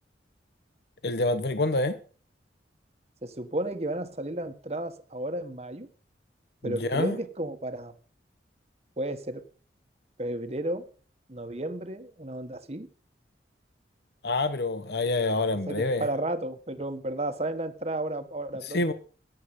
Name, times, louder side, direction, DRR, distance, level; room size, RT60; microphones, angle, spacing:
voice 1, 1.0-2.0 6.6-7.2 14.2-16.0 18.6-18.9, left 2 dB, 60° left, 0.9 m, -27 dB
voice 2, 3.2-5.9 6.6-7.9 9.0-9.4 10.2-10.8 11.3-12.9 15.7-18.8, right 1 dB, 35° right, 1.5 m, -33 dB
15.0 x 9.9 x 5.4 m
head